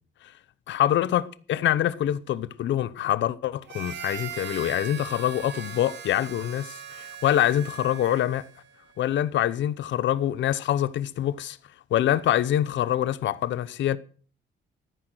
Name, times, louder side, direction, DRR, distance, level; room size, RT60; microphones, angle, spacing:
voice 1, 0.7-8.4 9.0-11.6 11.9-14.0, left 11 dB, 70° left, 0.8 m, -25 dB
Harmonica, 3.7-8.7, right 8 dB, 60° right, 2.1 m, -39 dB
14.0 x 10.0 x 6.3 m
cardioid pair, 90°, 20 cm